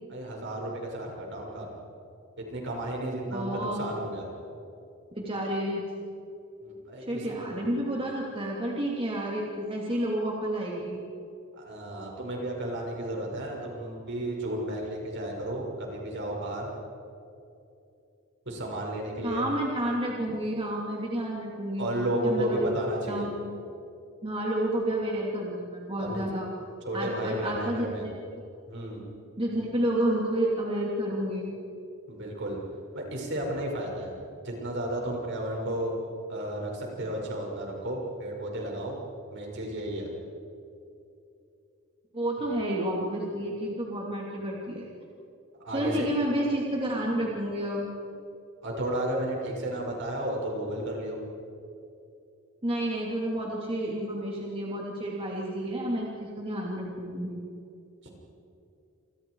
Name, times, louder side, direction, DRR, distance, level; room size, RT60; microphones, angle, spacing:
voice 1, 0.1-1.7 2.4-4.3 6.6-7.4 11.6-16.7 18.5-19.4 21.8-23.3 26.0-26.2 26.8-28.1 28.7-29.0 32.1-32.6 32.9-34.1 34.4-35.9 36.3-39.0 39.3-40.1 45.6-46.1 48.6-51.2 58.0-58.1, right 1 dB, 60° right, -1 dB, 6.3 m, -33 dB
voice 2, 3.3-3.9 5.1-5.8 7.1-11.0 19.2-21.9 22.2-22.8 23.1-23.6 24.2-26.5 26.9-28.1 29.4-31.5 42.1-44.9 45.7-47.9 52.6-57.4, right 1 dB, 25° right, -3 dB, 3.0 m, -30 dB
28.5 x 27.0 x 4.9 m, 2.7 s
head